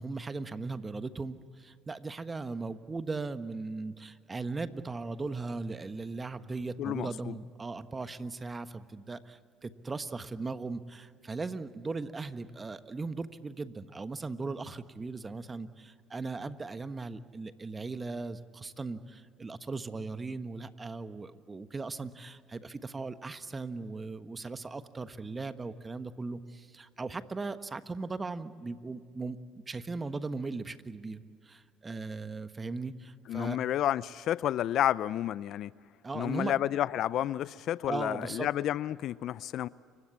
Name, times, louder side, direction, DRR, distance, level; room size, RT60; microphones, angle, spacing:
voice 1, 0.0-29.4 29.7-33.6 36.0-36.5 37.9-38.5, right 3 dB, 25° right, 11 dB, 1.3 m, -38 dB
voice 2, 6.8-7.3 33.3-35.7 36.1-39.7, left 12 dB, 60° left, 19 dB, 0.5 m, -30 dB
29.5 x 16.5 x 8.4 m, 2.2 s
hypercardioid pair, 70°, 0 cm